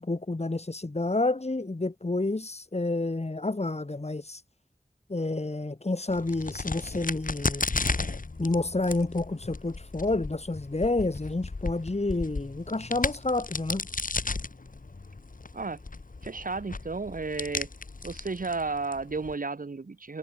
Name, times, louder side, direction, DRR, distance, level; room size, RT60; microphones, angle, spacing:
voice 1, 0.0-4.4 5.1-7.6 8.4-13.9, left 2 dB, 50° left, 4.8 m, -29 dB
Crack, 6.1-19.3, left 3 dB, 75° left, 6.4 m, -35 dB
voice 2, 16.2-17.7 18.0-20.2, right 3 dB, 80° right, 2.8 m, -33 dB
wide cardioid pair, 55°, 14 cm